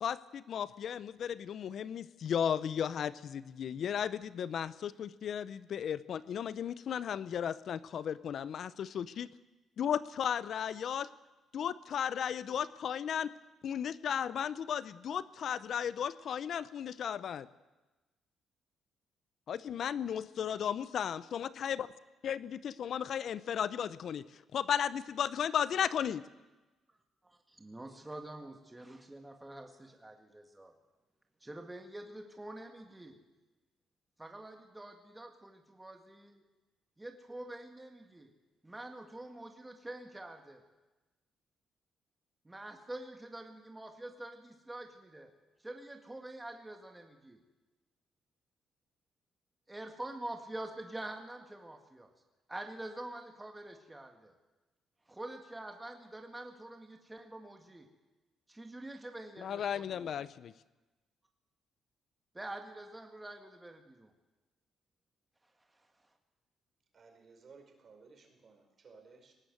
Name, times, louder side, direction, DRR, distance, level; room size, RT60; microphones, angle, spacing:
voice 1, 0.0-9.3 9.8-11.1 11.5-13.3 13.6-17.5 19.5-21.9 22.2-26.2 59.4-60.5, left 8 dB, 65° left, 16 dB, 0.7 m, -35 dB
voice 2, 27.6-30.7 31.4-33.2 34.2-36.4 37.0-38.3 38.6-40.6 42.5-45.3 45.6-47.4 49.7-52.1 52.5-54.4 55.1-57.9 58.5-60.1 62.3-64.1, right 1 dB, 15° right, 4 dB, 1.9 m, -46 dB
voice 3, 66.9-69.3, right 4 dB, 50° right, 4 dB, 5.1 m, -58 dB
19.5 x 19.0 x 8.0 m, 1.1 s
cardioid pair, 90°, 0 cm